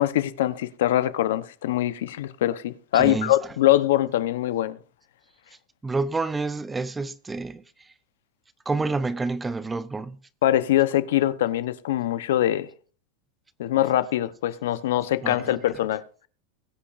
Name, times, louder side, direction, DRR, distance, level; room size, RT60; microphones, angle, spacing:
voice 1, 0.0-4.8 10.4-12.7 13.6-16.3, left 13 dB, 75° left, 0.9 m, -23 dB
voice 2, 2.9-3.4 5.8-7.9 8.7-10.2 15.2-15.6, right 3 dB, 10° right, 0.5 m, -29 dB
21.0 x 8.6 x 2.6 m
supercardioid pair, 165°, 0 cm